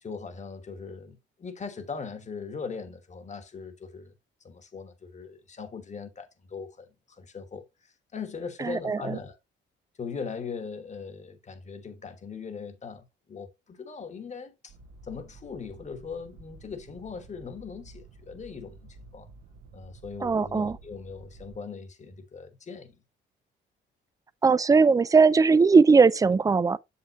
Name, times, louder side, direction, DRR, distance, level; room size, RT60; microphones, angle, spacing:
voice 1, 0.0-4.1 4.4-7.6 8.1-9.4 10.0-14.7 15.0-19.3 19.7-23.0, left 5 dB, 35° left, 1.4 m, -40 dB
voice 2, 8.6-9.2 20.2-20.8 24.4-26.8, right 4 dB, 15° right, 0.3 m, -19 dB
sound 1, 14.7-21.6, right 3 dB, 75° right, 1.2 m, -51 dB
6.9 x 5.7 x 3.0 m
cardioid pair, 90°, 20 cm